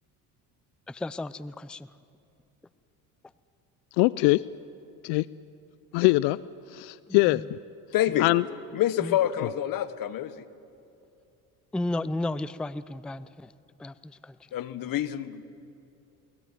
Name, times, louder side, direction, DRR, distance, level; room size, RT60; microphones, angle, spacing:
voice 1, 0.9-1.9 7.1-7.4 9.0-9.2 11.7-13.5 13.8-14.3, left 2 dB, ahead, 17 dB, 0.5 m, -33 dB
voice 2, 4.0-4.4 5.0-5.3 5.9-6.4 6.7-7.6 8.2-8.4, left 22 dB, 75° left, 19 dB, 0.6 m, -22 dB
voice 3, 7.9-8.3 8.7-10.4 14.5-15.4, left 12 dB, 55° left, 14 dB, 1.4 m, -27 dB
23.0 x 19.5 x 9.3 m, 2.7 s
supercardioid pair, 80°, 41 cm